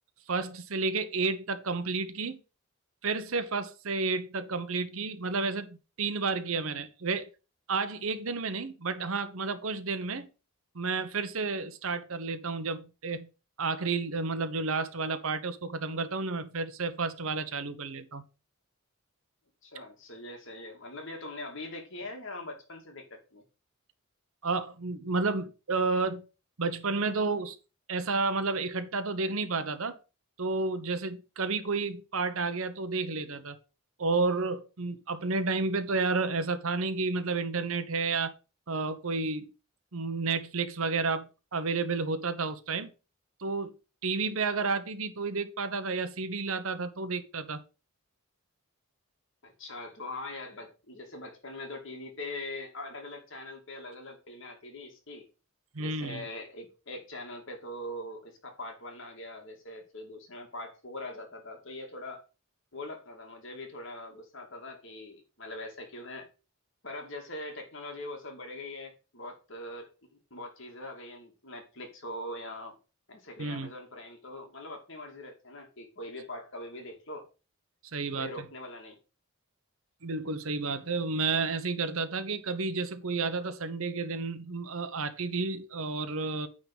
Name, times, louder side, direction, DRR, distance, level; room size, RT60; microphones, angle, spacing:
voice 1, 0.3-2.4 3.0-7.3 7.7-10.3 10.7-13.3 13.6-18.2 24.4-26.3 26.6-27.6 27.9-30.0 30.4-33.6 34.0-38.3 38.7-39.5 39.9-42.9 43.4-43.7 44.0-47.6 55.7-56.3 73.4-73.7 77.9-78.3 80.0-86.5, right 4 dB, 70° right, 1.0 m, -31 dB
voice 2, 19.6-23.4 49.4-55.3 55.8-62.2 62.7-66.3 66.8-72.7 73.1-77.3 78.1-79.0, left 1 dB, 55° left, 2.3 m, -42 dB
9.3 x 3.9 x 5.4 m
head